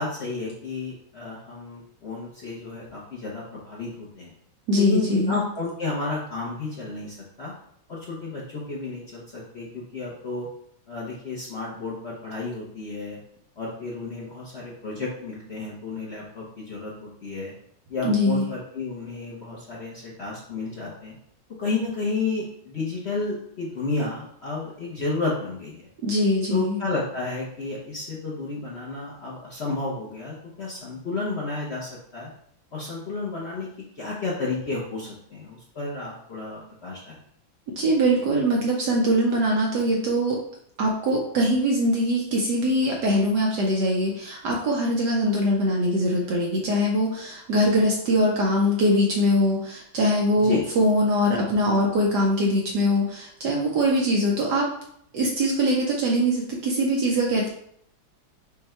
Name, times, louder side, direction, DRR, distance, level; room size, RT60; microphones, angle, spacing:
voice 1, 0.0-4.3 4.7-7.5 7.9-10.5 10.9-13.2 13.6-17.5 17.9-21.2 21.6-25.9 26.5-32.3 32.7-33.7 33.9-37.2 50.4-50.6, left 3 dB, 65° left, -4 dB, 0.6 m, -32 dB
voice 2, 4.7-5.4 18.0-18.5 26.0-26.8 37.7-40.4 40.8-54.7 55.1-57.5, equal, 65° right, -1 dB, 1.2 m, -22 dB
5.6 x 2.2 x 4.2 m, 0.69 s
omnidirectional pair, 2.2 m